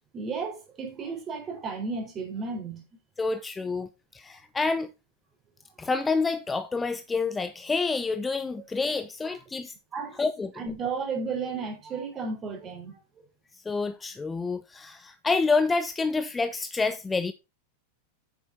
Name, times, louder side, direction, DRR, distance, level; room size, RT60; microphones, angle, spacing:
voice 1, 0.1-2.8 9.9-10.2 10.6-13.0, right 4 dB, 25° right, 3.8 m, -33 dB
voice 2, 3.2-4.9 5.8-9.7 10.2-10.7 13.7-17.3, left 4 dB, 15° left, 0.6 m, -28 dB
8.7 x 7.1 x 4.2 m
figure-of-eight pair, 90°, 0 cm